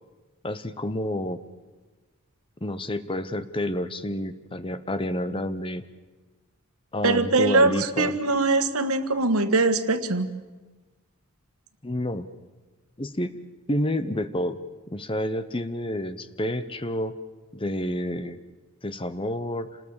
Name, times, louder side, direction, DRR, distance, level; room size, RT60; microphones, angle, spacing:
voice 1, 0.4-1.4 2.6-5.8 6.9-8.2 11.8-12.3 13.0-13.3 13.7-14.6 14.9-17.1 17.5-18.4 18.8-19.8, left 1 dB, 25° left, 13 dB, 0.8 m, -29 dB
voice 2, 7.0-10.3, right 3 dB, 75° right, 10 dB, 1.5 m, -22 dB
27.5 x 20.0 x 7.2 m, 1.2 s
head